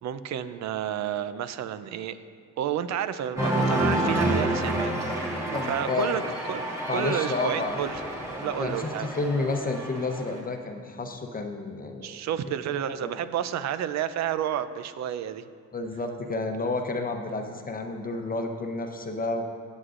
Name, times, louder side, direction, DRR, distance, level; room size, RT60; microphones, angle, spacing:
voice 1, 0.0-2.2 2.6-8.0 8.4-9.1 12.0-15.5, right 9 dB, 65° right, 13 dB, 0.6 m, -31 dB
Cheering, 3.4-10.4, right 1 dB, 10° right, 2.1 m, -29 dB
voice 2, 5.5-6.2 6.9-7.8 8.6-12.2 13.0-13.1 15.7-19.4, left 3 dB, 30° left, 4 dB, 0.8 m, -30 dB
17.5 x 8.2 x 2.5 m, 2.2 s
cardioid pair, 105°, 29 cm